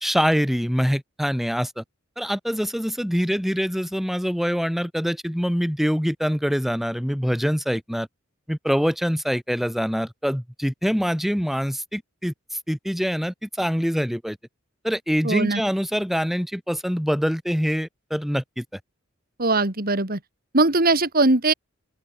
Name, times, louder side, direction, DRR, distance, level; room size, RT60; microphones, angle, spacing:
voice 1, 0.0-1.8 2.2-8.1 8.5-12.3 12.7-14.4 14.8-18.6, equal, ahead, 3.2 m, -24 dB
voice 2, 15.2-15.6 19.4-20.2 20.5-21.5, right 2 dB, 45° right, 3.0 m, -20 dB
open air
head